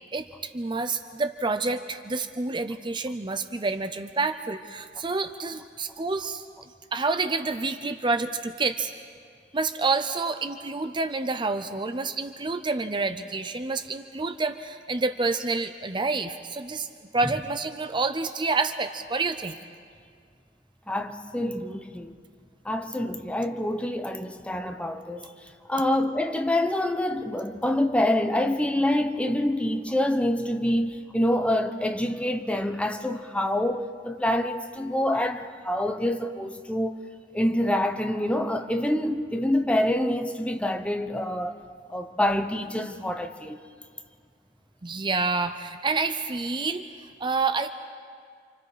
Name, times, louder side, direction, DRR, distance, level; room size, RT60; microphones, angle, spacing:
voice 1, 0.5-6.4 6.9-8.9 9.5-16.9 17.1-19.6 44.8-47.7, right 3 dB, 25° right, 0.6 m, -28 dB
voice 2, 20.9-22.1 22.6-25.3 25.7-37.1 37.3-41.6 41.9-43.6, left 1 dB, 5° left, 1.0 m, -26 dB
29.0 x 27.0 x 5.0 m
head